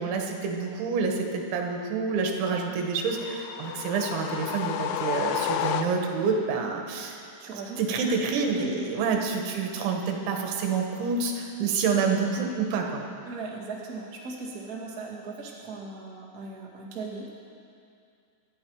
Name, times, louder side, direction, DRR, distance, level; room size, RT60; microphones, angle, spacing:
voice 1, 0.0-7.2 7.8-13.0, right 5 dB, 80° right, 2 dB, 3.7 m, -28 dB
sound 1, 3.1-6.3, left 9 dB, 80° left, 2.6 m, -31 dB
voice 2, 7.4-7.8 8.1-8.2 8.6-9.0 13.2-17.3, right 3 dB, 40° right, -4 dB, 1.3 m, -38 dB
25.0 x 10.5 x 4.8 m, 2.5 s
omnidirectional pair, 5.4 m